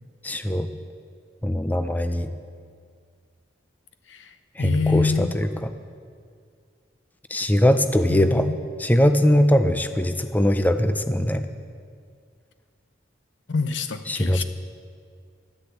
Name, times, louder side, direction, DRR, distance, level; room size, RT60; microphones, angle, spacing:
voice 1, 0.2-0.7 1.4-2.3 4.6-5.5 7.3-8.5 8.8-11.4 14.1-14.4, left 1 dB, 10° left, 9 dB, 0.5 m, -21 dB
voice 2, 4.1-5.4 8.1-8.6 13.5-14.4, left 4 dB, 75° left, 9 dB, 0.8 m, -26 dB
13.5 x 10.0 x 8.2 m, 2.1 s
head